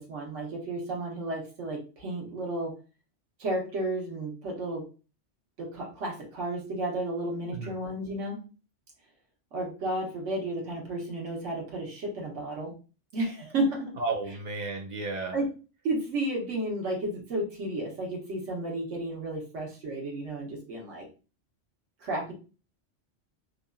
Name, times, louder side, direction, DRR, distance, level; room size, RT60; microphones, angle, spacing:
voice 1, 0.0-2.7 3.4-4.8 5.6-8.4 9.5-12.7 13.1-13.9 15.3-15.5 15.8-21.1 22.0-22.3, right 1 dB, 90° right, -1 dB, 1.3 m, -32 dB
voice 2, 14.0-15.4, right 3 dB, 50° right, 1 dB, 0.6 m, -33 dB
2.9 x 2.4 x 2.2 m, 0.34 s
omnidirectional pair, 1.2 m